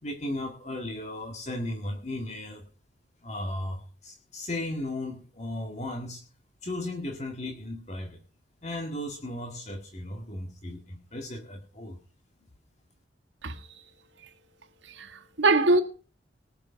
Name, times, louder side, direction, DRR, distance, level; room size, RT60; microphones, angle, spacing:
voice 1, 0.0-2.6 3.2-6.2 6.6-8.2 8.6-12.0, left 1 dB, 40° left, 2.0 m, -35 dB
voice 2, 15.0-15.8, right 2 dB, 90° right, 1.6 m, -23 dB
19.0 x 6.9 x 5.7 m
head